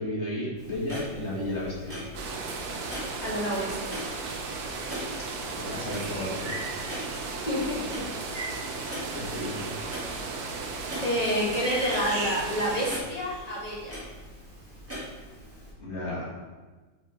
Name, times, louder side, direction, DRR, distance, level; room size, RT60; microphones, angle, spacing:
voice 1, 0.0-2.0 5.7-6.5 9.1-9.7 15.8-16.3, left 1 dB, 40° left, -6 dB, 2.4 m, -33 dB
Clock, 0.6-15.7, equal, 5° right, 2.4 m, -42 dB
sound 1, 2.1-13.0, right 4 dB, 60° right, 1.2 m, -35 dB
voice 2, 3.2-3.9 7.1-8.0 11.0-14.0, equal, 20° left, -5 dB, 1.9 m, -29 dB
sound 2, 6.4-6.8 8.3-8.7 10.7-11.1 11.9-12.6 12.8-13.7, right 2 dB, 35° right, 0.6 m, -37 dB
5.6 x 5.5 x 5.1 m, 1.3 s
omnidirectional pair, 2.0 m